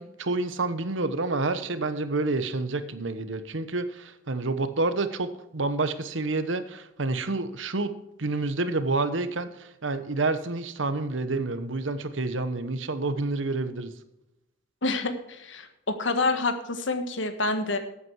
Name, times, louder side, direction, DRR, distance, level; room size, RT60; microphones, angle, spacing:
voice 1, 0.0-7.9 8.2-13.9, right 3 dB, 85° right, 11 dB, 1.1 m, -28 dB
voice 2, 14.8-17.8, left 3 dB, 80° left, 8 dB, 1.5 m, -27 dB
13.5 x 8.5 x 4.7 m, 0.87 s
head